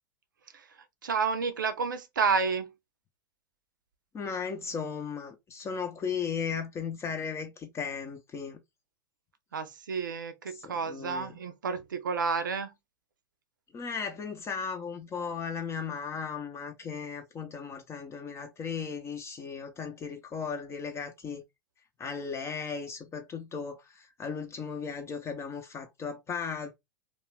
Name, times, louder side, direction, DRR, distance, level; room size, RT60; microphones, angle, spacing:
voice 1, 1.0-2.7 9.5-12.7, right 5 dB, 90° right, 0.4 m, -30 dB
voice 2, 4.1-8.6 10.5-11.3 13.7-21.4 22.0-26.7, left 6 dB, 25° left, 0.5 m, -36 dB
2.3 x 2.1 x 3.1 m
hypercardioid pair, 95°, 10 cm